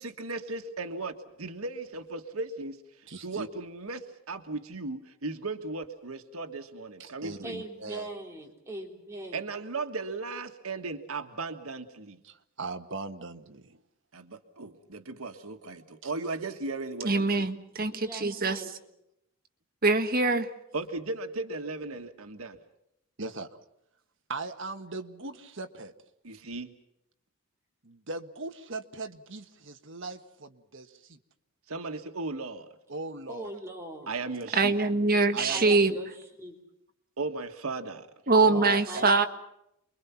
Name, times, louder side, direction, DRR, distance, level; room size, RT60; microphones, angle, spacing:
voice 1, 0.0-2.8 3.2-7.6 9.3-12.2 14.1-17.5 20.7-22.6 26.2-26.7 31.7-32.7 34.1-34.7 37.2-38.1, right 3 dB, 90° right, 6 dB, 1.6 m, -36 dB
voice 2, 3.1-3.5 7.0-8.1 12.2-13.8 16.0-16.1 23.2-23.6 24.3-25.9 27.8-31.2 32.9-33.5 35.3-35.7 38.4-39.1, right 3 dB, 60° right, 6 dB, 1.5 m, -39 dB
voice 3, 7.4-9.4 17.9-18.7 33.3-34.1 35.5-36.1 36.4-36.5 38.5-39.3, right 1 dB, 15° right, 0 dB, 3.6 m, -40 dB
voice 4, 17.0-18.6 19.8-20.5 34.5-35.9 38.3-39.3, right 3 dB, 45° right, 7 dB, 1.5 m, -23 dB
29.0 x 23.0 x 5.9 m, 0.81 s
head